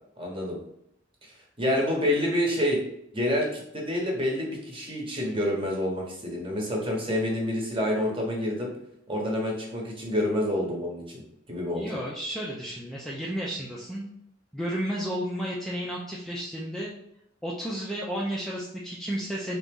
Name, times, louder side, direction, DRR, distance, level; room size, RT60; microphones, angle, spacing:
voice 1, 0.2-0.6 1.6-2.8 3.1-8.7 9.1-11.2 11.5-11.9, left 1 dB, 25° right, -2 dB, 1.1 m, -28 dB
voice 2, 11.7-14.1 14.5-16.9 17.4-19.6, equal, ahead, -5 dB, 0.5 m, -32 dB
3.9 x 2.9 x 3.7 m, 0.77 s
head